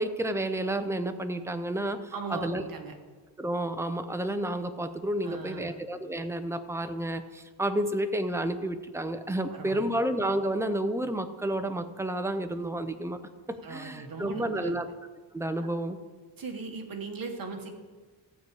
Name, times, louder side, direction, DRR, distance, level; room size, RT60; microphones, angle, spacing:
voice 1, 0.0-2.6 3.4-13.2 13.7-14.9 15.3-16.0, right 1 dB, 5° right, 8 dB, 0.4 m, -30 dB
voice 2, 2.1-3.0 5.2-5.7 9.5-9.8 13.6-14.8 16.4-17.7, right 4 dB, 50° right, 4 dB, 1.4 m, -38 dB
13.5 x 4.7 x 8.2 m, 1.4 s
wide cardioid pair, 180°, 44 cm